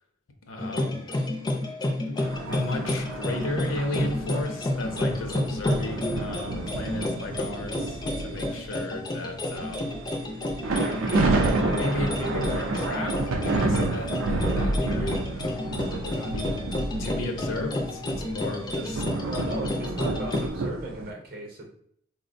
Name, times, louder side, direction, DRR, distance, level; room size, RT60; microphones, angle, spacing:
voice 1, 0.5-1.1 2.0-9.9 11.1-19.1, left 2 dB, 75° left, 4 dB, 0.5 m, -35 dB
sound 1, 0.6-20.5, left 1 dB, 20° left, 0.3 m, -31 dB
sound 2, 2.2-8.9 9.4-21.1, right 2 dB, 80° right, 0.4 m, -30 dB
voice 2, 19.3-21.6, right 1 dB, 45° right, 1 dB, 0.7 m, -37 dB
4.2 x 2.0 x 2.5 m, 0.67 s
head